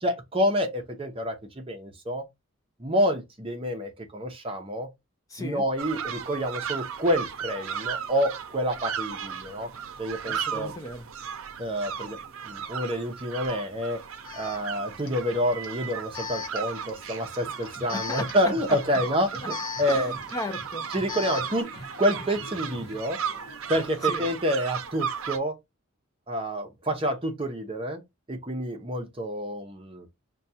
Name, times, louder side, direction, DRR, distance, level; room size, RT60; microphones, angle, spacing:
voice 1, 0.0-2.2 2.8-4.9 5.4-9.7 10.0-10.7 11.6-12.2 12.4-14.0 14.3-20.1 20.9-21.7 22.0-23.2 23.7-25.5 26.3-28.0 28.3-30.1, equal, 25° right, 0.7 m, -28 dB
voice 2, 5.3-5.6 10.3-11.0 17.9-18.5 19.9-20.8 24.0-24.2, left 1 dB, 15° left, 0.4 m, -36 dB
sound 1, 5.8-25.4, right 7 dB, 85° right, 0.5 m, -35 dB
Alarm, 13.4-13.5 14.2-21.6, left 5 dB, 80° left, 0.9 m, -40 dB
sound 2, 17.4-24.1, equal, 50° left, 0.9 m, -47 dB
5.2 x 2.3 x 2.7 m
head